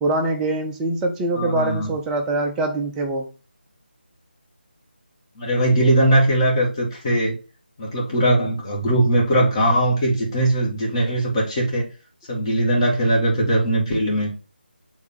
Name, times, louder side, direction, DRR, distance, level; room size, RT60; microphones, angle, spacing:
voice 1, 0.0-3.3, right 2 dB, 5° right, 0.3 m, -23 dB
voice 2, 1.3-1.9 5.4-7.4 7.8-11.9 12.3-14.3, right 1 dB, 25° left, 2.2 m, -20 dB
7.0 x 3.5 x 3.8 m
figure-of-eight pair, 160°, 6 cm